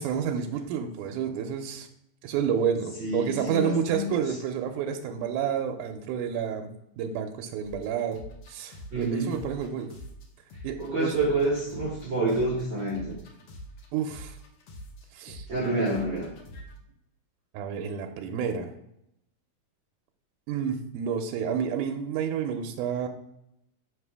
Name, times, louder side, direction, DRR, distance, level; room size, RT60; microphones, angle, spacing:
voice 1, 0.0-1.9 2.2-6.7 7.0-8.2 8.5-9.9 10.6-11.2 13.9-14.3 15.1-15.5 17.5-18.7 20.5-23.1, right 7 dB, 80° right, 5 dB, 2.0 m, -30 dB
voice 2, 3.0-4.2 8.9-9.3 10.8-13.1 15.5-16.3, right 2 dB, 50° right, -4 dB, 1.5 m, -28 dB
sound 1, 7.6-10.2 10.5-16.7, equal, 60° left, 1.6 m, -45 dB
5.8 x 4.9 x 3.4 m, 0.80 s
omnidirectional pair, 3.7 m